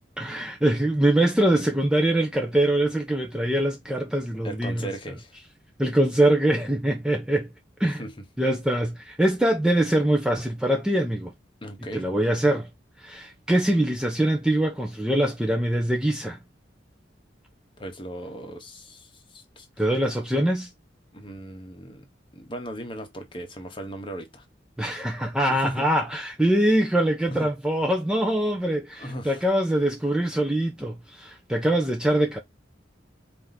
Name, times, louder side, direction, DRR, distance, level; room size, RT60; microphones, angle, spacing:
voice 1, 0.2-4.9 5.8-7.5 7.8-8.0 8.4-11.3 11.9-12.7 13.0-16.4 19.8-20.7 24.8-32.4, right 1 dB, 5° right, 0.5 m, -23 dB
voice 2, 4.4-5.4 7.8-8.2 11.6-12.1 17.8-19.7 21.1-22.1 22.3-24.4 25.5-25.8 27.3-27.5 29.0-29.4, right 1 dB, 25° left, 1.0 m, -37 dB
4.5 x 2.6 x 3.9 m
head